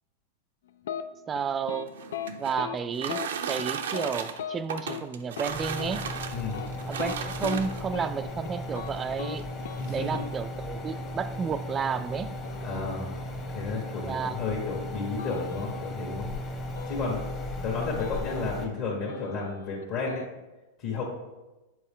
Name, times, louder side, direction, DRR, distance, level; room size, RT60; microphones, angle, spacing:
sound 1, 0.8-1.0 1.3-1.8 2.1-2.3 2.6-2.8 3.1-3.3 3.6-4.1 4.4-4.6 4.9-5.0 5.4-5.5 5.8-5.9 6.4-7.6 7.9-8.1 8.4-8.9 9.2-9.4 9.6-9.8 10.1-10.3 12.4-13.2 15.2-15.9 16.8-17.6 18.0-18.8 19.1-20.3, left 9 dB, 80° left, 0.4 m, -38 dB
voice 1, 1.3-1.9 2.4-6.1 6.9-9.5 9.9-12.4 14.0-14.4, right 6 dB, 25° right, 13 dB, 0.3 m, -32 dB
sound 2, 1.8-8.0 8.9-9.0 9.4-9.5 9.8-10.2, right 7 dB, 80° right, 0.6 m, -36 dB
sound 3, 5.5-18.7, left 1 dB, 30° left, 1.2 m, -36 dB
voice 2, 6.3-6.6 9.8-10.2 12.6-13.1 13.5-16.3 16.9-17.2 17.6-20.2 20.8-21.0, left 4 dB, 50° left, -5 dB, 1.6 m, -32 dB
7.1 x 4.1 x 3.7 m, 1.1 s
hypercardioid pair, 125°, 0 cm